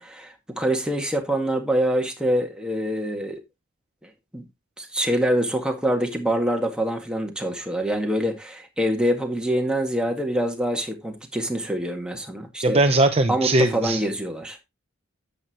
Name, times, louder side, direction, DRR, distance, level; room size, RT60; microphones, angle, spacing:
voice 1, 0.0-3.4 4.3-4.4 4.8-12.8 13.3-14.6, equal, 5° right, 2.0 m, -25 dB
voice 2, 12.6-14.0, right 2 dB, 30° right, 0.7 m, -20 dB
10.5 x 8.1 x 2.9 m
head